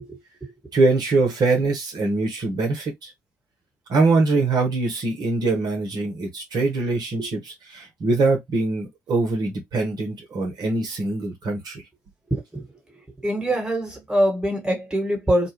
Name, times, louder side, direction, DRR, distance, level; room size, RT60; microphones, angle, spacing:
voice 1, 0.7-3.1 3.9-11.8, right 3 dB, 55° right, 1.0 m, -23 dB
voice 2, 12.3-12.6 13.2-15.5, equal, 10° right, 1.4 m, -23 dB
2.6 x 2.3 x 2.9 m
hypercardioid pair, 45°, 8 cm